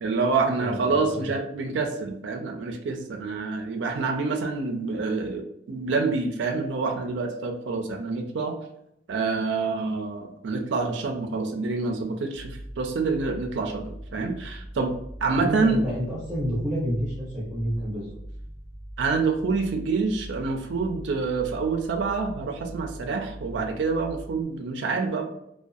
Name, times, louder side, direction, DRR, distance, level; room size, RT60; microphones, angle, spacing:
voice 1, 0.0-8.6 9.1-14.9 15.2-15.8 19.0-25.2, right 4 dB, 70° right, 3 dB, 0.4 m, -27 dB
voice 2, 0.6-1.3 15.4-18.1, equal, ahead, -8 dB, 0.7 m, -29 dB
sound 1, 12.3-24.4, right 1 dB, 80° left, 1.3 m, -42 dB
2.6 x 2.2 x 2.3 m, 0.77 s
head